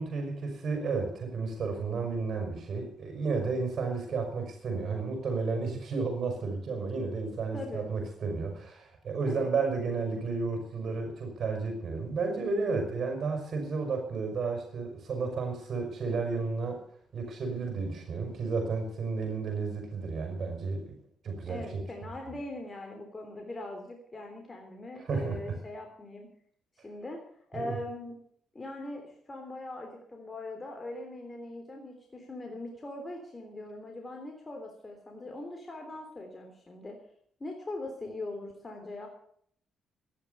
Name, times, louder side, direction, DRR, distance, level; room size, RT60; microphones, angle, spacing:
voice 1, 0.0-16.8 17.1-21.0 21.2-21.8 25.1-25.6 27.6-27.7, right 4 dB, 55° right, 3 dB, 5.5 m, -32 dB
voice 2, 7.5-7.9 9.3-9.5 21.5-26.3 26.8-27.2 27.5-28.1 28.5-37.0 37.4-39.1, left 2 dB, 25° left, 2 dB, 3.4 m, -41 dB
14.5 x 11.0 x 6.9 m, 0.62 s
cardioid pair, 90°, 0 cm